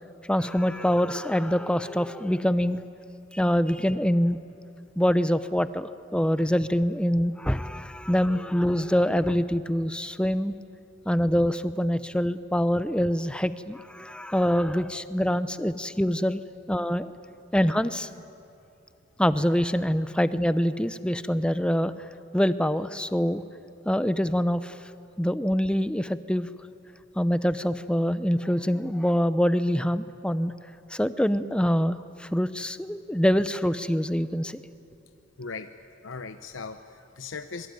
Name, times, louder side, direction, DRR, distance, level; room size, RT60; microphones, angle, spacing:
voice 1, 0.3-2.8 3.3-4.4 5.0-10.5 11.1-16.4 16.7-17.1 17.5-18.1 19.2-21.9 22.3-23.4 23.9-24.8 25.2-26.5 27.2-30.5 30.9-34.6, equal, 5° left, 13 dB, 0.7 m, -25 dB
voice 2, 35.4-35.7 36.0-37.7, left 4 dB, 80° left, 8 dB, 0.9 m, -38 dB
26.5 x 22.5 x 9.3 m, 2.7 s
head